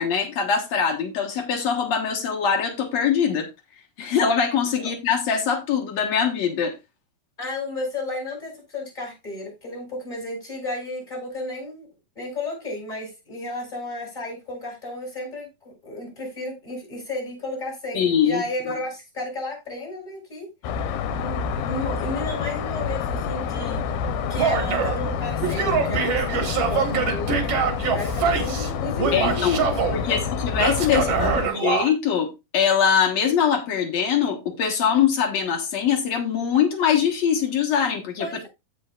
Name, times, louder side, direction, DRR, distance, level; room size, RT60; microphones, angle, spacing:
voice 1, 0.0-3.5 4.0-6.7 17.9-18.4 29.1-29.6 29.9-38.3, left 7 dB, 60° left, 2.0 m, -22 dB
voice 2, 7.4-11.9 12.2-20.5 21.1-24.0 24.3-27.4 27.9-30.4 30.9-31.4 38.2-38.5, left 2 dB, 10° left, 5.7 m, -33 dB
sound 1, 20.6-31.5, left 6 dB, 80° left, 2.7 m, -28 dB
Male speech man speaking / Yell, 24.4-25.0 25.4-28.7 29.0-30.0 30.6-31.9, right 6 dB, 55° right, 1.9 m, -24 dB
15.5 x 5.4 x 2.4 m
omnidirectional pair, 4.4 m